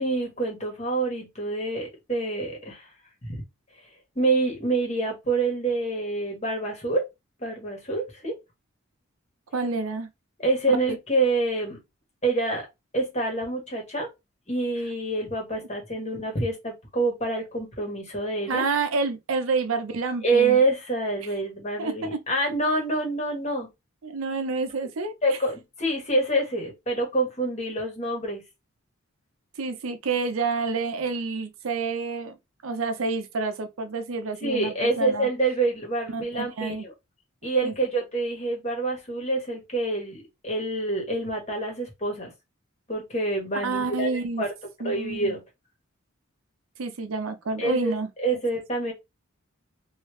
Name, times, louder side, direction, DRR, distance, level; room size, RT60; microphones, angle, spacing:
voice 1, 0.0-2.9 3.2-3.4 4.1-7.1 7.4-8.3 10.4-11.8 12.2-12.7 12.9-14.1 14.5-18.6 20.2-23.7 25.2-28.4 34.4-36.9 37.4-42.3 42.9-44.5 44.8-45.4 47.6-47.9 48.2-48.9, right 2 dB, 30° left, 1.4 m, -26 dB
voice 2, 9.5-10.1 10.9-11.0 18.5-20.6 21.8-22.2 24.0-25.1 29.6-32.4 32.6-35.3 36.1-36.8 37.6-37.7 43.5-44.4 44.8-45.4 46.8-48.4, right 4 dB, 85° right, 0.6 m, -28 dB
3.2 x 2.7 x 3.1 m
head